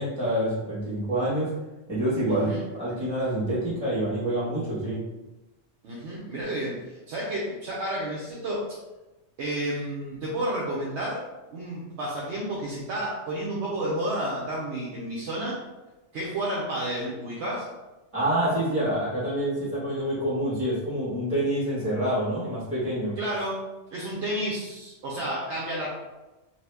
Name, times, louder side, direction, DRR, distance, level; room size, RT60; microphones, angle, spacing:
voice 1, 0.0-1.5 1.9-5.0 18.1-23.1, right 1 dB, 5° left, -13 dB, 1.2 m, -27 dB
voice 2, 2.3-2.6 5.8-8.8 9.4-11.2 11.5-15.6 16.1-17.7 23.2-23.6 23.9-25.9, right 1 dB, 75° right, -5 dB, 0.9 m, -31 dB
2.8 x 2.5 x 3.3 m, 1.1 s
omnidirectional pair, 1.2 m